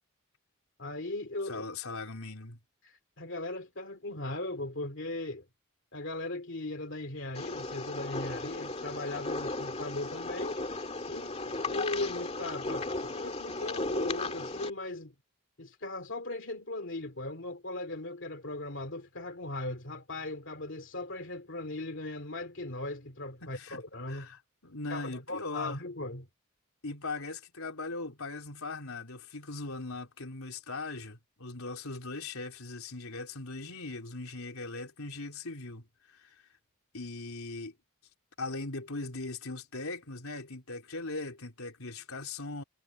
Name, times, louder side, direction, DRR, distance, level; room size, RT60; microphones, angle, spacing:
voice 1, 0.8-1.6 2.8-5.4 5.9-15.1 15.6-24.3 24.9-26.3, left 2 dB, 60° left, 2.7 m, -38 dB
voice 2, 1.5-2.6 23.4-23.8 24.1-25.8 26.8-36.4 36.9-37.7 38.4-42.6, left 3 dB, 80° left, 3.7 m, -39 dB
sound 1, 7.3-14.7, left 2 dB, 30° left, 2.4 m, -36 dB
head